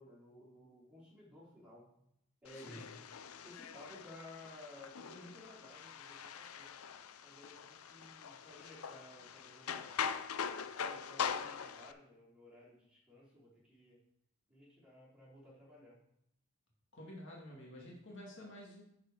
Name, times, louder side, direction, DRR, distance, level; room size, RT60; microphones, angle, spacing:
voice 1, 0.0-2.1 2.4-3.0 3.4-6.8 7.2-10.2 10.8-14.0 14.5-16.0, left 1 dB, 5° right, -8 dB, 3.8 m, -56 dB
sound 1, 2.4-11.9, left 7 dB, 75° left, 0.5 m, -42 dB
voice 2, 2.5-2.9 16.9-18.8, equal, 55° left, -2 dB, 2.1 m, -50 dB
11.0 x 4.9 x 5.0 m, 0.75 s
head